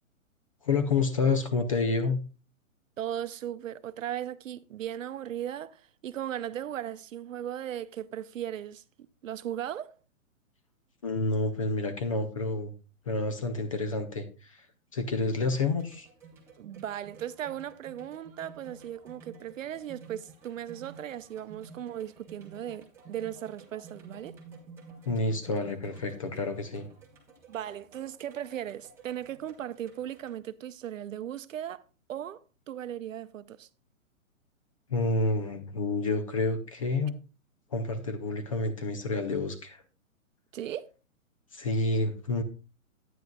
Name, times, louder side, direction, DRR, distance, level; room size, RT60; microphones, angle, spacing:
voice 1, 0.6-2.2 11.0-12.7 13.1-14.6 14.9-16.1 25.1-26.9 34.9-37.2 37.7-39.8 41.5-42.4, left 3 dB, 25° left, 0.5 m, -29 dB
voice 2, 3.0-8.8 9.2-10.0 16.6-24.4 27.5-31.8 32.1-33.7 40.5-40.9, right 11 dB, 70° right, 0.6 m, -37 dB
sound 1, 15.5-30.3, right 4 dB, 5° right, 0.8 m, -52 dB
10.5 x 9.2 x 2.3 m
hypercardioid pair, 150°, 41 cm